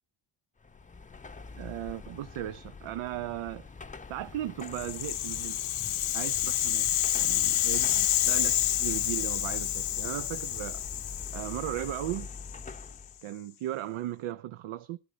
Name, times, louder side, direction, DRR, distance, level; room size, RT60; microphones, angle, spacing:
Car passing by / Traffic noise roadway noise / Engine, 0.6-13.2, left 4 dB, 15° left, 0.6 m, -44 dB
voice 1, 1.6-3.7 4.1-5.6 6.1-10.8 11.3-12.3 13.2-15.0, right 13 dB, 85° right, 0.7 m, -37 dB
Rattle (instrument), 4.7-12.9, left 13 dB, 80° left, 0.9 m, -29 dB
12.5 x 10.0 x 3.9 m
cardioid pair, 125°, 48 cm